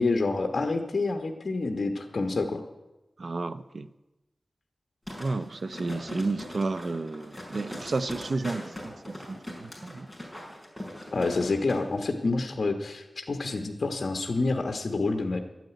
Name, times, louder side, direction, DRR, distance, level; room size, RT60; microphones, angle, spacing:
voice 1, 0.0-2.6 11.1-15.4, left 3 dB, 65° left, 4 dB, 1.1 m, -28 dB
voice 2, 3.2-3.9 5.2-10.1, right 3 dB, 65° right, 13 dB, 0.6 m, -32 dB
sound 1, 5.1-11.8 12.2-12.3, left 1 dB, 10° right, 5.2 m, -41 dB
12.0 x 9.3 x 9.3 m, 1.0 s
wide cardioid pair, 85°, 0 cm